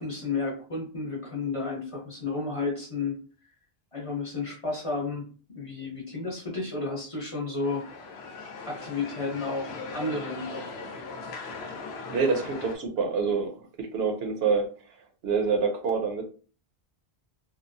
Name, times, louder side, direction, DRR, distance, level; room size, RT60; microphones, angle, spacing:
voice 1, 0.0-3.1 3.9-7.8 8.7-10.6, left 3 dB, 35° left, -2 dB, 0.8 m, -32 dB
sound 1, 7.6-12.8, left 4 dB, 80° left, 0.8 m, -39 dB
voice 2, 12.1-13.5 13.8-14.7 15.2-16.2, right 5 dB, 80° right, 4 dB, 0.9 m, -26 dB
2.8 x 2.0 x 2.5 m, 0.38 s
omnidirectional pair, 1.0 m